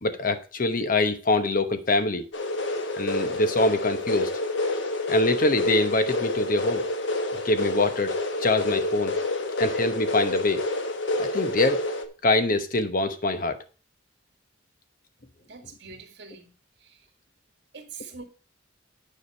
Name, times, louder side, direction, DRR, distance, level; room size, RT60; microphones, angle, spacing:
voice 1, 0.0-2.2 3.0-4.3 5.1-6.8 7.4-8.1 8.4-9.1 9.6-10.6 11.1-11.8 12.2-13.6, left 2 dB, 45° left, 1.0 m, -24 dB
sound 1, 2.3-12.1, left 2 dB, 75° left, 1.2 m, -28 dB
voice 2, 15.5-16.5 16.8-17.1 17.7-18.2, right 5 dB, 60° right, 1.8 m, -44 dB
9.7 x 5.1 x 5.6 m
head